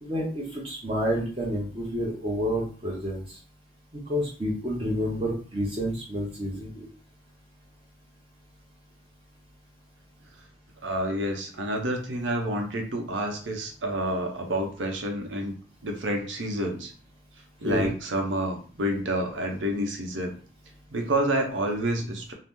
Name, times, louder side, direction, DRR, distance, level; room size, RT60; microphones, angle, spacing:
voice 1, 0.0-3.2 4.1-6.9 17.6-17.9, equal, 30° right, -3 dB, 0.7 m, -29 dB
voice 2, 10.8-15.5 15.8-16.9 17.6-20.3 20.9-22.3, right 1 dB, 85° right, 3 dB, 0.7 m, -28 dB
2.8 x 2.0 x 3.5 m, 0.41 s
head